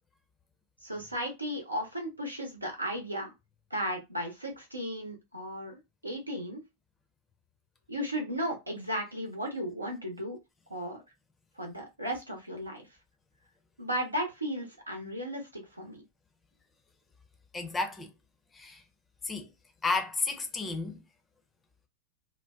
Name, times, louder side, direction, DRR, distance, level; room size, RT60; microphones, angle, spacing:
voice 1, 0.8-3.3 3.7-6.6 7.9-10.4 10.7-11.0 11.6-12.8 13.8-16.0, equal, 85° right, 0.8 m, -35 dB
voice 2, 17.5-18.1 18.5-18.8 19.2-19.5 19.8-21.0, left 3 dB, 15° left, 0.5 m, -32 dB
2.6 x 2.1 x 2.2 m
figure-of-eight pair, 90°, 0 cm